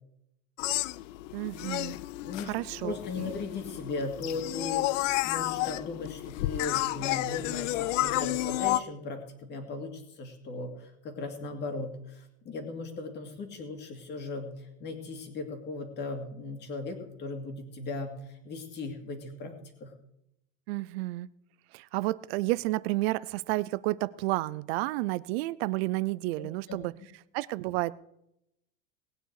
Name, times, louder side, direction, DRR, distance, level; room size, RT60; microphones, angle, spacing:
sound 1, 0.6-8.8, left 16 dB, 70° left, 0.6 m, -31 dB
voice 1, 1.3-2.0 2.5-3.3 20.7-21.3 21.7-26.9 27.3-27.9, right 19 dB, 55° right, 19 dB, 0.6 m, -31 dB
voice 2, 2.2-19.6 19.8-19.9 26.4-26.8, left 3 dB, 25° left, 5 dB, 2.3 m, -38 dB
19.5 x 9.2 x 4.8 m, 0.81 s
supercardioid pair, 165°, 38 cm